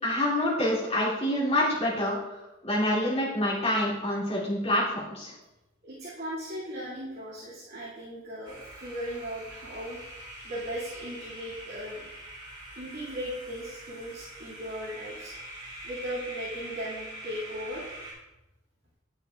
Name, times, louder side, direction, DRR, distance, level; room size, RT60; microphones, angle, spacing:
voice 1, 0.0-5.3, left 1 dB, 35° left, -7 dB, 2.7 m, -27 dB
voice 2, 5.8-10.2 10.4-12.0 12.8-15.3 15.8-17.9, equal, 55° right, -10 dB, 2.2 m, -37 dB
sound 1, 8.4-18.1, right 1 dB, 25° right, 2.3 m, -44 dB
9.7 x 6.9 x 2.3 m, 0.97 s
head